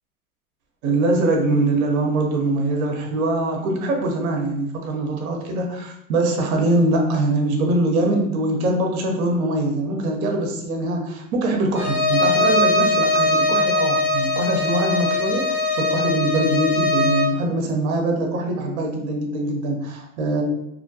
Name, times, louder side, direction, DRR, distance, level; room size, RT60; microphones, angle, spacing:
voice 1, 0.8-20.4, right 2 dB, 75° right, 2 dB, 0.8 m, -23 dB
Bowed string instrument, 11.7-17.4, left 2 dB, 30° left, 0.5 m, -21 dB
2.5 x 2.1 x 2.7 m, 0.80 s
hypercardioid pair, 115°, 43 cm